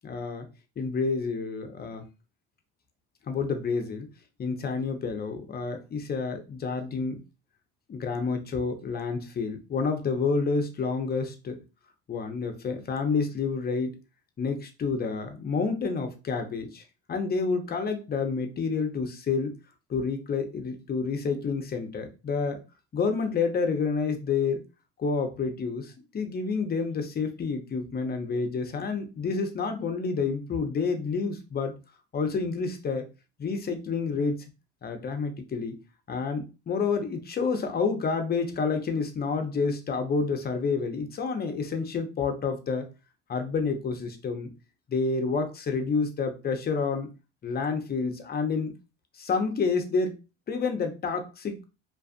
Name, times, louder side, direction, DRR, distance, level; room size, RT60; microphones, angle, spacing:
voice 1, 0.0-0.5 0.8-2.0 3.3-4.1 4.4-7.2 7.9-11.6 12.1-13.9 14.4-16.8 17.1-19.5 19.9-22.6 22.9-24.6 25.0-31.7 32.1-33.1 33.4-34.4 34.8-35.8 36.1-42.9 43.3-44.5 44.9-47.1 47.4-48.7 49.1-50.2 50.5-51.6, left 4 dB, 30° left, 6 dB, 0.7 m, -29 dB
2.5 x 2.3 x 2.4 m, 0.29 s
supercardioid pair, 75°, 31 cm